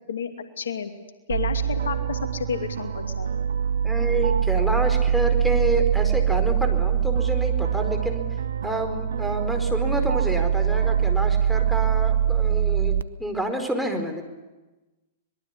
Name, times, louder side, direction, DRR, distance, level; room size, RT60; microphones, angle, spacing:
voice 1, 0.6-0.9 1.3-3.3, left 6 dB, 80° left, 6 dB, 2.6 m, -30 dB
sound 1, 1.3-13.0, right 8 dB, 75° right, 0.8 m, -23 dB
voice 2, 3.8-8.3 8.6-14.2, right 1 dB, ahead, 3 dB, 4.7 m, -28 dB
25.0 x 22.0 x 9.9 m, 1.1 s
hypercardioid pair, 110°, 0 cm